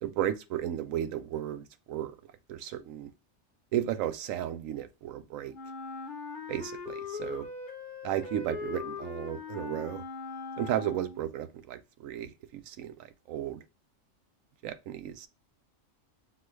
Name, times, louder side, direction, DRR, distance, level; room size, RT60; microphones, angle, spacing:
voice 1, 0.0-2.2 2.5-3.1 3.7-5.5 6.5-7.5 8.0-10.0 10.6-13.6 14.6-15.3, right 11 dB, 90° right, 1.0 m, -34 dB
Wind instrument woodwind instrument, 5.5-11.3, left 4 dB, 45° left, 0.9 m, -40 dB
6.0 x 2.3 x 3.1 m
omnidirectional pair, 1.3 m